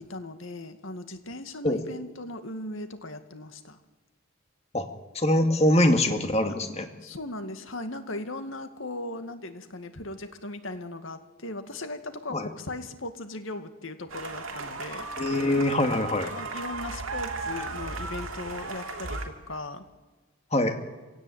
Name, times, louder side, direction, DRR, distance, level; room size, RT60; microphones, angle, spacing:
voice 1, 0.0-3.8 7.0-15.1 16.2-19.8, left 2 dB, 65° left, 8 dB, 2.1 m, -38 dB
voice 2, 5.1-6.9 12.3-12.5 15.2-16.3 20.5-20.8, left 1 dB, 30° left, 6 dB, 2.3 m, -23 dB
sound 1, 14.1-19.3, right 3 dB, 70° right, 2.9 m, -35 dB
26.5 x 17.0 x 9.3 m, 1.3 s
head